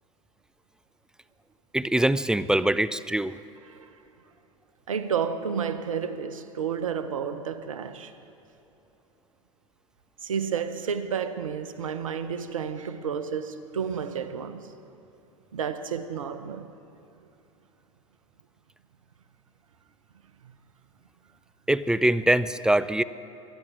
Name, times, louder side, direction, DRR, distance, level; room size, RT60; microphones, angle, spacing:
voice 1, 1.7-3.4 21.7-23.0, right 1 dB, 5° right, 0.4 m, -23 dB
voice 2, 4.9-8.1 10.2-14.7 15.5-16.7 20.4-20.6, right 7 dB, 80° right, 0.8 m, -31 dB
22.5 x 10.5 x 5.0 m
hypercardioid pair, 85°, 17 cm